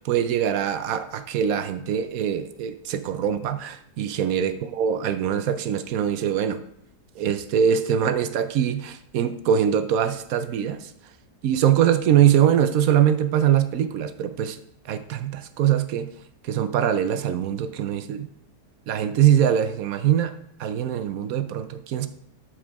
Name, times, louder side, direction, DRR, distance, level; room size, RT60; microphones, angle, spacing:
voice 1, 0.0-6.6 7.2-10.9 11.4-14.6 14.9-16.1 16.4-18.3 18.9-20.3 20.6-22.1, right 9 dB, 65° right, 11 dB, 1.0 m, -23 dB
12.5 x 5.0 x 3.5 m, 0.73 s
omnidirectional pair, 1.8 m